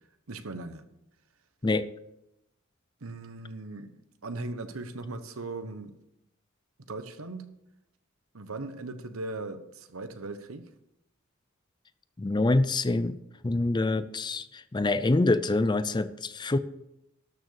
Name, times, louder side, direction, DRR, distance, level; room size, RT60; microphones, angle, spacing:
voice 1, 0.3-0.8 3.0-5.9 6.9-7.5 8.3-10.7, right 2 dB, 90° right, 10 dB, 1.1 m, -38 dB
voice 2, 12.2-13.2 13.4-16.6, left 2 dB, 20° left, 14 dB, 0.5 m, -26 dB
12.5 x 6.7 x 6.5 m, 0.85 s
head